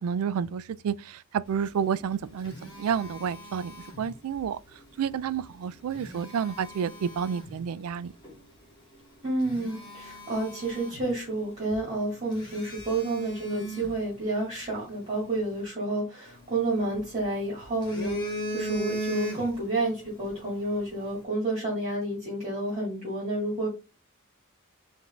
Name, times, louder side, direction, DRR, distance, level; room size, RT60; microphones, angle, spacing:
voice 1, 0.0-2.5 2.8-4.6 5.0-8.1, right 7 dB, 80° right, 0.3 m, -30 dB
Telephone, 1.9-4.5 5.7-7.6 8.2-8.4 8.9-9.0 9.4-11.5 11.7-11.8 12.3-14.7 16.3-17.2 17.6-19.8 20.1-20.3, right 1 dB, 20° left, 1.7 m, -38 dB
voice 2, 9.2-23.7, right 2 dB, 35° right, 1.9 m, -30 dB
4.8 x 2.7 x 3.4 m
head